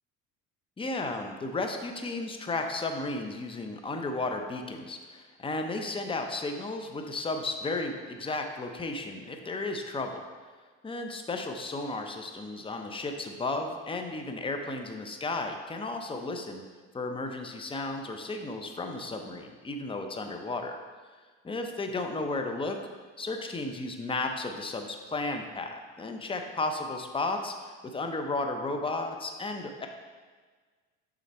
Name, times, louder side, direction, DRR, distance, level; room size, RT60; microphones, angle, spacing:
voice 1, 0.8-10.2 10.8-16.7 16.9-20.8 21.4-22.8 23.2-29.9, left 2 dB, 15° left, 5 dB, 0.7 m, -34 dB
6.6 x 3.8 x 4.3 m, 1.5 s
supercardioid pair, 90°, 33 cm